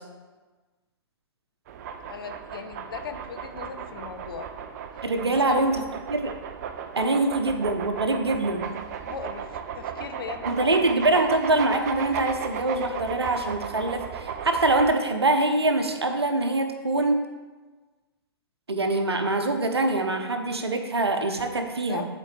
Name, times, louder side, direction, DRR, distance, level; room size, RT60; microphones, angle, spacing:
sound 1, 1.7-14.9, right 7 dB, 40° right, 0.5 m, -36 dB
voice 1, 2.1-4.5 5.4-5.6 9.1-10.9 21.9-22.1, left 6 dB, 60° left, 7 dB, 0.7 m, -38 dB
voice 2, 5.0-5.8 6.1-6.3 7.0-8.7 10.5-17.2 18.7-22.1, right 2 dB, 75° right, 5 dB, 0.9 m, -24 dB
11.0 x 4.3 x 3.4 m, 1.3 s
figure-of-eight pair, 115°, 13 cm